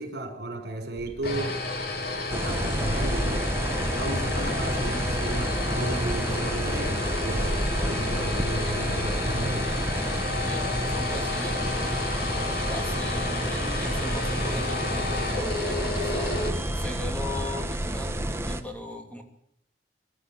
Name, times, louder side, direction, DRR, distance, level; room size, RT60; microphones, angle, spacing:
voice 1, 0.0-1.6 2.3-3.5 3.8-7.5 7.8-9.7, right 1 dB, 65° right, 6 dB, 5.2 m, -34 dB
sound 1, 1.0-17.2, left 2 dB, 60° left, 3.5 m, -31 dB
sound 2, 2.3-18.6, right 1 dB, 15° right, 1.4 m, -30 dB
voice 2, 10.4-19.2, left 1 dB, 10° left, 4 dB, 2.7 m, -39 dB
25.0 x 12.5 x 9.1 m, 0.72 s
head